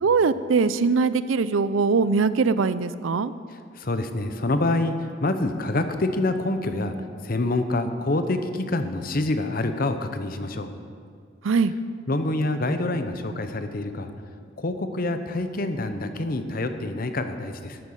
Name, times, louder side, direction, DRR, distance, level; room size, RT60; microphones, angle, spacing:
voice 1, 0.0-3.3 11.4-11.7, right 4 dB, 85° right, 15 dB, 0.5 m, -21 dB
voice 2, 3.5-6.9 7.2-10.7 12.1-14.1 14.6-17.8, left 2 dB, 45° left, 8 dB, 0.8 m, -26 dB
13.0 x 9.0 x 6.5 m, 2.2 s
head